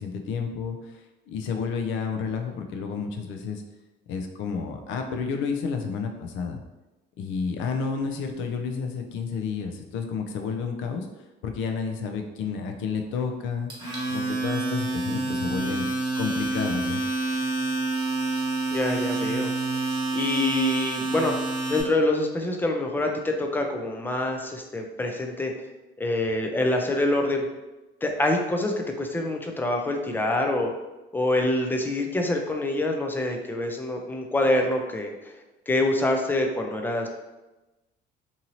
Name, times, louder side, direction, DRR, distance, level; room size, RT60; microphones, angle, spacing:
voice 1, 0.0-3.6 4.1-6.6 7.2-11.1 11.4-13.7 14.1-15.9 16.2-17.0, left 5 dB, 70° left, 4 dB, 0.5 m, -30 dB
Domestic sounds home sounds, 13.7-21.8, right 2 dB, 20° right, 1.1 m, -28 dB
voice 2, 18.7-19.5 20.1-21.3 21.7-25.5 26.0-27.5 28.0-30.7 31.1-35.3 35.7-37.1, left 1 dB, 10° left, 3 dB, 0.4 m, -25 dB
2.7 x 2.6 x 2.9 m, 1.1 s
cardioid pair, 110°, 21 cm